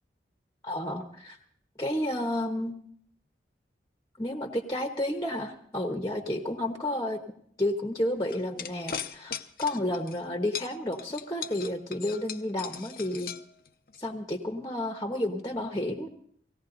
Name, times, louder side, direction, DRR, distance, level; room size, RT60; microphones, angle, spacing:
voice 1, 0.6-1.4 1.8-2.7 4.2-7.2 7.6-13.3 14.0-16.1, left 1 dB, 20° left, 5 dB, 1.1 m, -31 dB
sound 1, 8.3-10.2 10.5-14.0, left 8 dB, 55° left, 0.7 m, -38 dB
18.0 x 16.5 x 4.0 m, 0.65 s
head